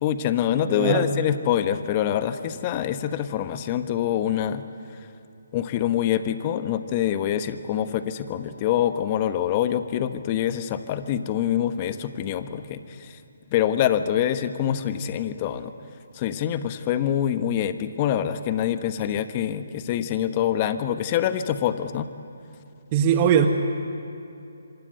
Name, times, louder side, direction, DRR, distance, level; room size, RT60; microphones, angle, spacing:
voice 1, 0.0-4.6 5.5-13.2 13.5-15.7 16.1-22.1, left 10 dB, 30° left, 10 dB, 1.3 m, -25 dB
voice 2, 0.7-1.1 22.9-23.5, right 8 dB, 30° right, 6 dB, 1.4 m, -20 dB
26.0 x 26.0 x 8.1 m, 2.7 s
figure-of-eight pair, 145°, 0 cm